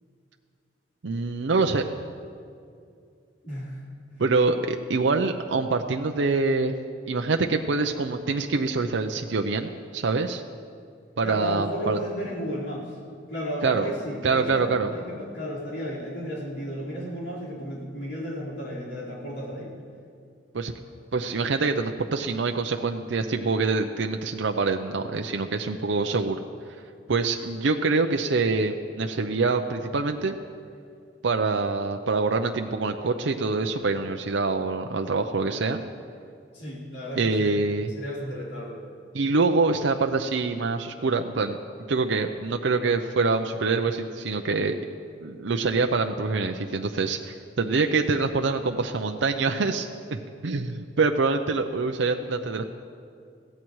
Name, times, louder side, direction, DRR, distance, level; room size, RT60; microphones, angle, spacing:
voice 1, 1.0-2.2 4.2-6.8 7.1-10.4 11.2-12.0 13.6-13.9 14.2-14.9 20.5-20.7 21.1-26.4 27.1-30.4 31.2-35.8 37.2-37.9 39.1-41.6 41.9-44.8 45.2-52.6, right 3 dB, 80° right, 4 dB, 0.6 m, -25 dB
voice 2, 3.4-3.8 4.1-4.2 11.2-13.0 13.3-19.7 36.5-37.6 38.0-38.8, equal, 70° left, -7 dB, 4.5 m, -33 dB
22.0 x 16.0 x 3.1 m, 2.3 s
head